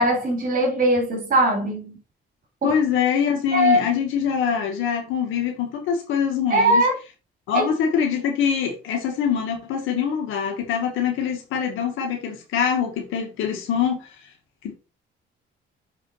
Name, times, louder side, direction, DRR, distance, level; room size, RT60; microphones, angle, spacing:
voice 1, 0.0-2.0 2.6-2.8 3.5-3.8 6.5-7.0 7.5-7.6, right 1 dB, 45° right, 3.4 m, -20 dB
voice 2, 2.6-6.8 7.5-14.2 14.6-14.7, left 7 dB, 90° left, 2.0 m, -24 dB
6.9 x 5.0 x 4.1 m
cardioid pair, 90°, 20 cm